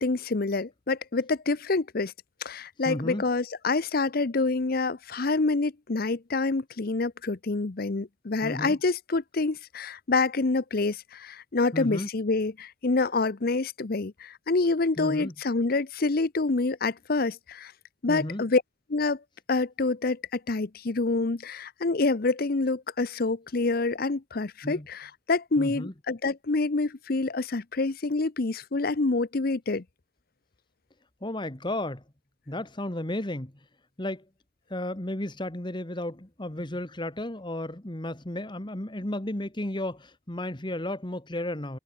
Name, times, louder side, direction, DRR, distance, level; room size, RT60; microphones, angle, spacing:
voice 1, 0.0-2.1 2.4-17.7 18.0-18.6 18.9-19.2 19.5-29.8, left 3 dB, 50° left, 0.7 m, -27 dB
voice 2, 2.8-3.2 8.4-8.8 11.7-12.1 15.0-15.3 18.1-18.4 24.6-24.9 25.6-25.9 31.2-32.0 32.5-33.5 34.0-34.2 34.7-41.8, left 1 dB, 25° left, 1.7 m, -33 dB
head